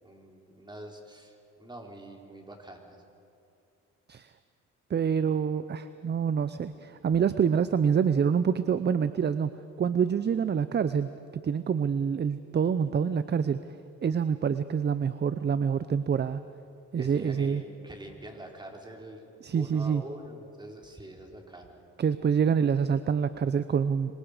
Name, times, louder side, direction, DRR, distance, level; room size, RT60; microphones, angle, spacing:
voice 1, 0.0-3.0 17.0-19.2 19.5-21.8, right 1 dB, 15° right, 1 dB, 4.0 m, -45 dB
voice 2, 4.9-9.5 9.8-11.1 11.4-13.6 14.0-16.4 16.9-17.6 19.4-20.0 22.0-24.2, right 7 dB, 35° right, 13 dB, 0.7 m, -26 dB
26.5 x 24.5 x 5.1 m, 2.6 s
cardioid pair, 90°, 30 cm